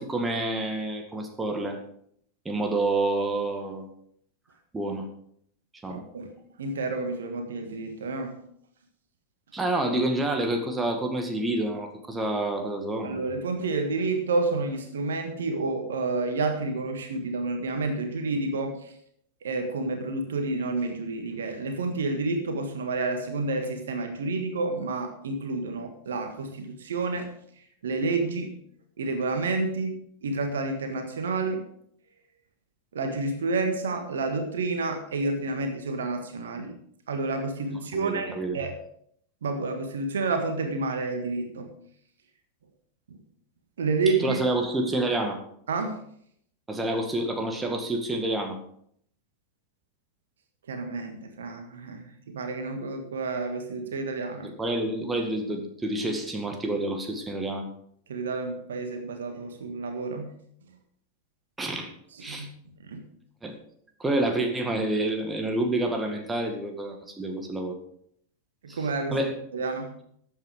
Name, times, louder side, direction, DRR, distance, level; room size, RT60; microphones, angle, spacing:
voice 1, 0.0-1.8 2.5-3.9 4.7-5.1 5.8-6.0 9.5-13.2 37.9-38.6 44.1-45.4 46.7-48.6 54.4-57.7 61.6-61.9 62.2-62.5 63.4-63.6 64.0-67.8 68.7-69.4, right 2 dB, 10° right, 4 dB, 1.9 m, -28 dB
voice 2, 5.9-6.3 6.6-8.4 13.0-18.9 19.4-27.4 27.8-28.6 29.0-31.6 32.9-36.8 37.1-38.7 39.4-41.7 43.8-44.4 45.7-46.0 50.7-54.5 58.1-60.3 62.3-62.5 62.9-63.0 68.6-69.3 69.5-69.9, right 3 dB, 65° right, 6 dB, 1.6 m, -29 dB
13.0 x 8.1 x 4.9 m, 0.66 s
figure-of-eight pair, 90°, 0 cm